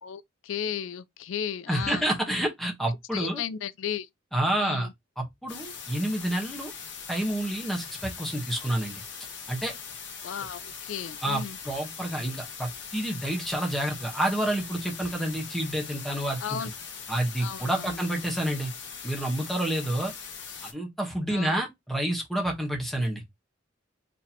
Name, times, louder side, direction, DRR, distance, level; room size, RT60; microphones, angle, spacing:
voice 1, 0.0-2.1 3.1-4.1 4.6-4.9 10.2-11.6 16.4-16.7 17.4-18.0 21.3-21.6, left 8 dB, 85° left, 0.4 m, -34 dB
voice 2, 1.7-3.4 4.3-4.9 5.2-6.7 7.1-9.0 9.5-9.7 11.2-16.6 17.1-18.7 19.0-20.1 20.6-23.2, right 1 dB, ahead, 1.1 m, -29 dB
sound 1, 5.5-20.7, left 6 dB, 65° left, 1.2 m, -41 dB
4.1 x 3.1 x 2.8 m
head